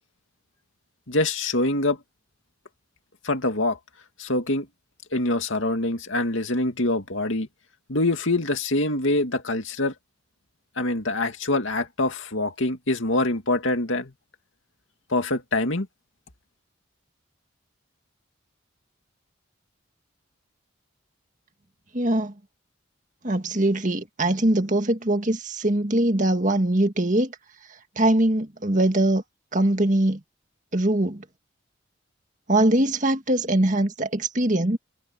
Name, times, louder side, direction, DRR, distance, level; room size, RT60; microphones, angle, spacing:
voice 1, 1.1-2.0 3.2-3.8 4.2-4.7 5.1-7.5 7.9-9.9 10.8-14.1 15.1-15.9, left 2 dB, 70° left, 2.4 m, -24 dB
voice 2, 21.9-22.3 23.2-27.3 28.0-29.2 29.5-30.2 30.7-31.2 32.5-34.8, right 1 dB, 40° right, 1.9 m, -22 dB
head